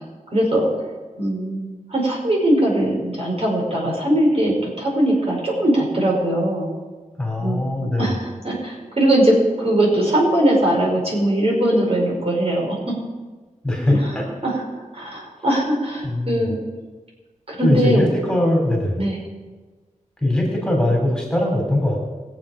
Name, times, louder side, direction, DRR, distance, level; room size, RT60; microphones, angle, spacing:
voice 1, 0.3-0.7 1.2-6.7 7.4-7.7 8.0-12.8 13.9-14.1 14.4-14.7 14.9-16.6 17.5-18.1 19.0-19.2, right 1 dB, 45° right, -3 dB, 5.0 m, -20 dB
voice 2, 7.2-8.1 13.6-14.3 16.0-16.5 17.6-19.0 20.2-22.0, left 1 dB, 5° left, -1 dB, 3.1 m, -21 dB
21.5 x 7.9 x 5.0 m, 1.3 s
wide cardioid pair, 90°, 14 cm